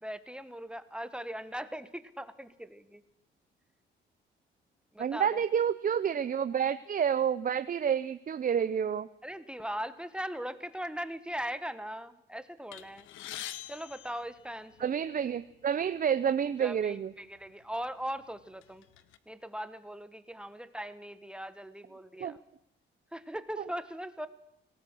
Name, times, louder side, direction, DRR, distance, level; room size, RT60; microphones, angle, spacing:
voice 1, 0.0-3.0 4.9-5.4 9.2-13.1 13.7-14.9 16.6-18.8 19.3-22.4 23.1-24.3, equal, 5° right, 12 dB, 1.5 m, -39 dB
voice 2, 5.0-9.1 14.8-17.1 22.2-22.4 23.6-23.7, right 8 dB, 45° right, 13 dB, 0.8 m, -29 dB
sound 1, 12.7-15.0 15.9-16.0 16.3-16.5 17.4-17.5 18.0-19.2, left 12 dB, 90° left, 1.2 m, -45 dB
25.5 x 18.0 x 6.4 m, 0.79 s
cardioid pair, 90°, 20 cm